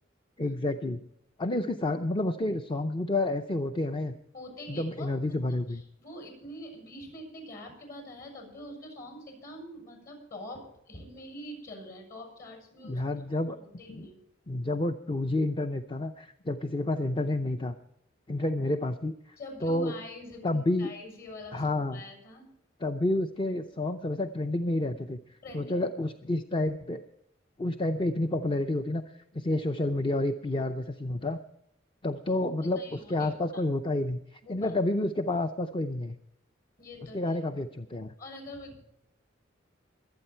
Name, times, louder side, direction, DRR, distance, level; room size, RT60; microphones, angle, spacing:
voice 1, 0.4-1.0 1.4-4.1 4.7-5.8 12.8-13.6 13.9-14.1 14.5-17.8 18.3-19.4 19.6-19.9 20.4-20.9 21.5-22.0 22.8-25.2 25.5-27.0 27.6-29.0 29.3-31.4 32.0-36.2 37.1-38.1, left 2 dB, 25° left, 7 dB, 0.6 m, -29 dB
voice 2, 4.3-13.0 13.3-14.2 19.4-22.5 25.4-25.9 32.3-32.4 32.8-33.6 34.4-34.7 36.8-37.4 38.2-38.8, left 1 dB, 55° left, 4 dB, 7.1 m, -45 dB
23.5 x 8.8 x 4.5 m, 0.77 s
head